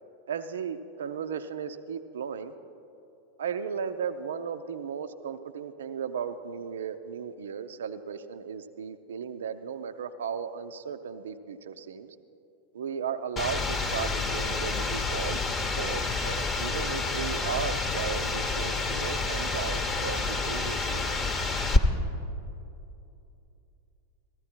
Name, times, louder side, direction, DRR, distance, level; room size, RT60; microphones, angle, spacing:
voice 1, 0.3-2.5 3.4-12.2 12.7-15.5 15.8-21.1, right 7 dB, 65° right, 9 dB, 0.5 m, -35 dB
sound 1, 13.4-21.8, left 3 dB, 25° left, 0.9 m, -29 dB
15.0 x 14.0 x 4.3 m, 2.8 s
figure-of-eight pair, 90°, 0 cm